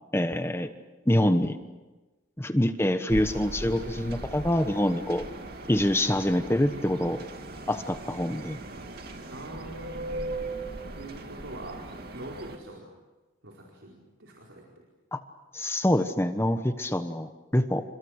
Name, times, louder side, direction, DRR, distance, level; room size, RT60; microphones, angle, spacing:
voice 1, 0.1-0.7 1.1-1.6 2.4-5.2 5.7-7.2 7.7-8.6 15.1-15.2 15.5-17.8, left 1 dB, 15° left, 8 dB, 1.1 m, -25 dB
sound 1, 3.1-12.6, right 2 dB, 50° right, 2.6 m, -39 dB
voice 2, 9.3-10.3 10.9-11.8 12.1-12.9 13.4-13.9 14.2-14.8, right 1 dB, 80° right, -2 dB, 4.6 m, -43 dB
30.0 x 28.0 x 6.5 m, 1.2 s
head